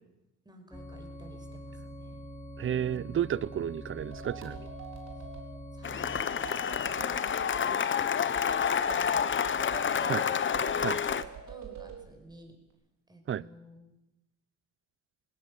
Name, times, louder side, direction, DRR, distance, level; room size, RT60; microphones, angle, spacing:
voice 1, 0.5-2.2 2.7-3.3 5.7-7.1 7.5-9.2 9.7-10.4 10.7-11.0 11.5-12.6 13.1-13.9, right 1 dB, 15° right, 5 dB, 5.2 m, -50 dB
sound 1, 0.7-6.2, equal, 10° left, 4.4 m, -44 dB
voice 2, 2.6-4.7 10.1-10.2 10.8-11.0 13.3-13.4, right 10 dB, 45° right, 21 dB, 0.6 m, -32 dB
sound 2, 4.0-5.5 6.2-7.7 8.3-9.9 10.5-12.0, right 5 dB, 65° right, 4.4 m, -45 dB
Cheering / Applause, 5.8-11.2, left 7 dB, 40° left, 0.9 m, -29 dB
18.5 x 17.5 x 8.1 m, 0.93 s
cardioid pair, 90°, 30 cm